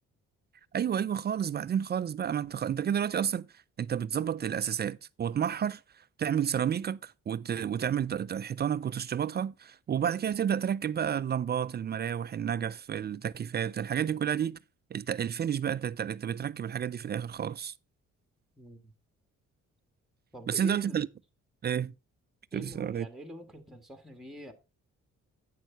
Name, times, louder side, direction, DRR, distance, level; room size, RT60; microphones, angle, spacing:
voice 1, 0.7-14.6 14.9-17.7 20.5-21.1 21.6-21.9 22.5-23.1, right 8 dB, 35° right, 0.4 m, -31 dB
voice 2, 18.6-18.9 20.3-21.0 22.5-24.5, right 1 dB, ahead, 1.6 m, -44 dB
9.2 x 6.3 x 4.4 m
cardioid pair, 90°, 30 cm